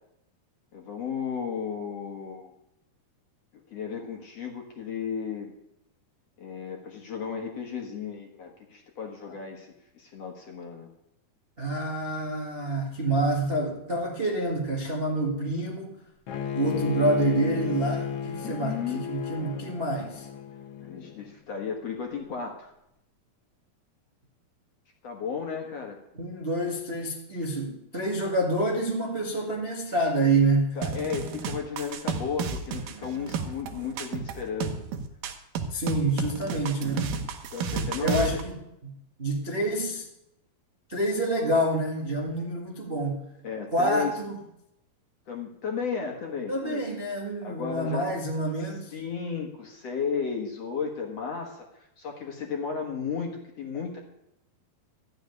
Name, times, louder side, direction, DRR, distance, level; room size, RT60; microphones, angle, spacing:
voice 1, 0.7-2.5 3.7-5.5 6.4-10.9 18.4-19.1 20.8-22.7 25.0-26.0 30.8-34.8 37.5-38.4 43.4-44.1 45.3-46.8 47.4-48.1 48.9-54.0, left 6 dB, 55° left, 1 dB, 2.1 m, -34 dB
voice 2, 11.6-15.9 16.5-20.3 26.1-30.8 35.7-37.2 38.0-38.6 38.8-40.1 40.9-43.3 43.7-44.4 46.5-48.9, right 2 dB, 35° right, -2 dB, 0.9 m, -27 dB
Bowed string instrument, 16.3-21.3, left 8 dB, 75° left, 1.4 m, -33 dB
sound 1, 30.8-38.4, right 5 dB, 70° right, 2.7 m, -32 dB
14.0 x 6.6 x 9.4 m, 0.81 s
omnidirectional pair, 4.3 m